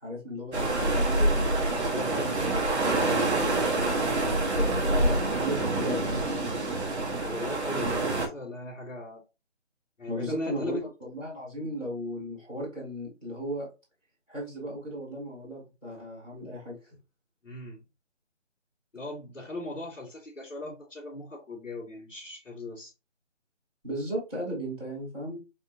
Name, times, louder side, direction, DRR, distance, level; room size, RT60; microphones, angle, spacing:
voice 1, 0.0-3.1 4.6-6.2 10.1-13.7 14.3-16.9 23.8-25.3, equal, ahead, 1.1 m, -36 dB
sound 1, 0.5-8.3, right 2 dB, 60° right, 1.3 m, -26 dB
voice 2, 3.0-3.3 4.0-4.5 7.2-9.2 10.0-10.8 17.4-17.8 18.9-22.9, left 2 dB, 85° left, 2.3 m, -38 dB
4.3 x 3.2 x 2.7 m
figure-of-eight pair, 170°, 37 cm